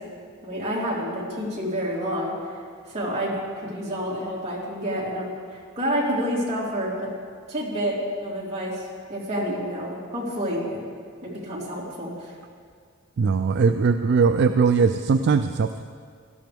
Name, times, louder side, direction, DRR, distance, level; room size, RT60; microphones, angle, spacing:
voice 1, 0.4-2.6 2.9-7.1 7.5-8.0 8.2-10.8 11.2-12.3, equal, 30° right, -6 dB, 3.2 m, -29 dB
voice 2, 13.2-15.9, right 5 dB, 55° right, 8 dB, 0.3 m, -20 dB
18.0 x 13.0 x 3.5 m, 2.1 s
head